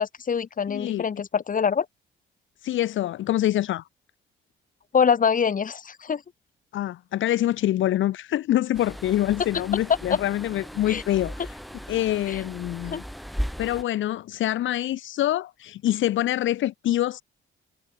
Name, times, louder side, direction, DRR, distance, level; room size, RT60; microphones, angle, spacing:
voice 1, 0.0-1.9 4.9-6.2 10.9-11.0 12.3-12.4 12.9-13.0, left 6 dB, 40° left, 2.6 m, -24 dB
voice 2, 0.7-1.0 2.6-3.8 6.7-11.5 11.9-13.0 13.6-17.2, left 13 dB, 75° left, 1.2 m, -25 dB
sound 1, 8.7-13.8, equal, ahead, 3.3 m, -36 dB
cardioid pair, 90°, 20 cm